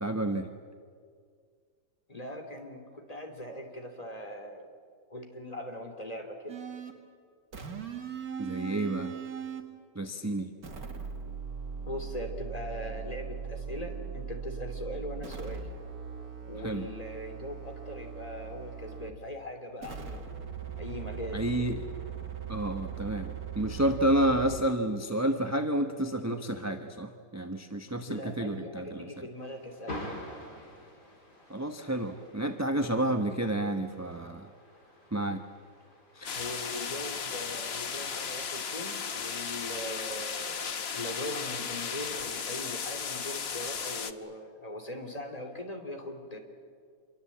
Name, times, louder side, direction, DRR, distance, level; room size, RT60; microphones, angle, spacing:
voice 1, 0.0-0.5 8.4-9.1 9.9-10.5 16.6-16.9 21.3-21.8 22.5-29.1 31.5-34.5 35.1-35.4 36.2-36.4, right 1 dB, 10° right, 5 dB, 0.8 m, -30 dB
voice 2, 2.1-4.7 5.1-6.6 11.9-15.7 16.5-20.2 20.7-21.4 28.0-30.0 36.3-40.6 40.9-46.4, left 1 dB, 20° left, 4 dB, 3.1 m, -40 dB
sound 1, 6.5-7.0 7.5-9.7 10.6-19.2 19.8-24.6, right 7 dB, 60° right, 2.4 m, -40 dB
sound 2, 29.4-40.3, left 1 dB, 70° left, 5.2 m, -49 dB
sound 3, 36.2-44.1, left 6 dB, 45° left, 1.1 m, -35 dB
27.0 x 23.0 x 8.6 m, 2.1 s
omnidirectional pair, 1.8 m